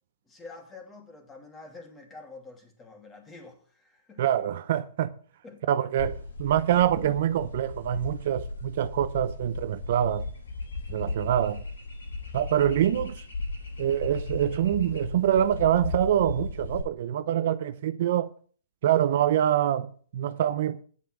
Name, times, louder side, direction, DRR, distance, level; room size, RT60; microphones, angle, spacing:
voice 1, 0.3-4.2 5.4-5.6 10.9-11.2, left 3 dB, 15° left, 2.8 m, -47 dB
voice 2, 4.2-5.1 5.7-10.3 10.9-11.6 12.3-13.2 13.8-18.3 18.8-20.8, right 11 dB, 55° right, 0.7 m, -25 dB
sound 1, 6.0-16.8, left 3 dB, 85° left, 6.4 m, -36 dB
9.2 x 7.6 x 6.3 m
hypercardioid pair, 135°, 0 cm